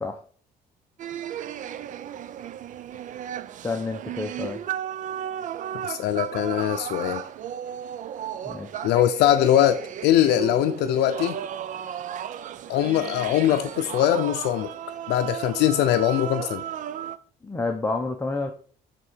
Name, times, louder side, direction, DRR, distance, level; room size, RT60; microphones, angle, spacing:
sound 1, 1.0-17.2, right 10 dB, 50° right, 0.4 m, -34 dB
voice 1, 3.6-4.6 8.4-8.7 17.4-18.5, left 3 dB, 15° left, 3 dB, 0.8 m, -29 dB
voice 2, 5.8-7.2 8.8-11.4 12.7-14.7 15.1-16.6, left 12 dB, 85° left, 7 dB, 0.6 m, -22 dB
7.5 x 3.7 x 4.6 m, 0.42 s
cardioid pair, 110°, 17 cm